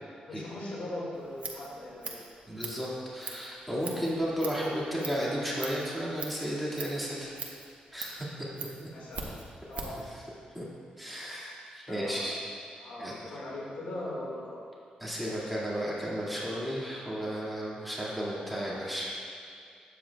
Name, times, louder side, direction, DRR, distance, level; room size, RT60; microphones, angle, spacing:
voice 1, 0.3-2.2 8.9-9.3 9.7-9.9 11.9-12.2 12.8-14.6, left 1 dB, 85° left, -5 dB, 1.9 m, -39 dB
Scissors, 1.1-10.1, right 4 dB, 55° right, 1.1 m, -43 dB
voice 2, 2.5-7.3 7.9-8.5 10.1-10.2 10.5-10.7 11.0-12.4 13.0-13.3 15.0-19.1, equal, ahead, -7 dB, 2.0 m, -33 dB
12.5 x 8.3 x 2.3 m, 2.3 s
cardioid pair, 105°, 3 cm